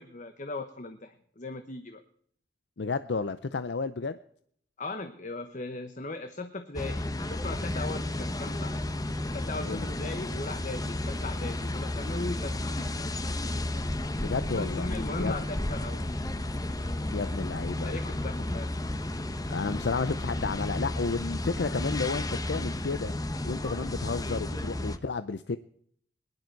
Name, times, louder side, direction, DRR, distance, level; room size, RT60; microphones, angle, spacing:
voice 1, 0.0-2.0 4.8-8.8 9.3-12.9 14.2-16.1 17.8-18.8, left 2 dB, 45° left, 9 dB, 1.0 m, -38 dB
voice 2, 2.8-4.2 9.7-9.9 14.2-14.9 15.2-15.3 17.1-17.9 19.5-23.1 23.4-25.6, left 4 dB, 80° left, 13 dB, 0.6 m, -32 dB
sound 1, 6.7-25.0, left 1 dB, 20° left, 0.9 m, -32 dB
21.0 x 11.0 x 4.6 m, 0.65 s
head